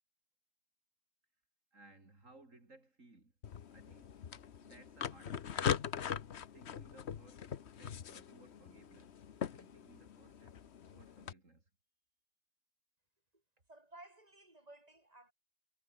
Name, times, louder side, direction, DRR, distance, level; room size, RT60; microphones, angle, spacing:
voice 1, 1.7-3.3 3.7-4.2 4.6-5.9 6.5-9.2 9.5-10.6 10.9-11.6, right 2 dB, 65° right, 4.8 m, -62 dB
sound 1, 3.4-11.3, left 8 dB, 55° left, 1.2 m, -41 dB
voice 2, 13.7-15.3, right 1 dB, 25° right, 5.9 m, -57 dB
omnidirectional pair, 1.4 m